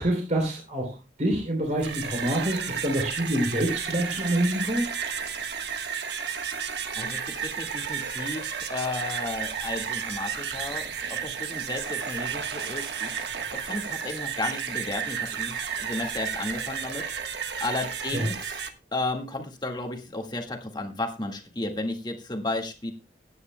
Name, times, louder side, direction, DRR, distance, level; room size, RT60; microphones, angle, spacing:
voice 1, 0.0-4.8 18.1-18.3, right 1 dB, 45° right, 0 dB, 3.3 m, -26 dB
sound 1, 1.6-18.7, right 7 dB, 65° right, 1.3 m, -32 dB
voice 2, 6.9-13.2 13.6-18.6 18.9-22.9, left 2 dB, 25° left, 3 dB, 1.8 m, -33 dB
21.5 x 9.6 x 2.2 m, 0.29 s
head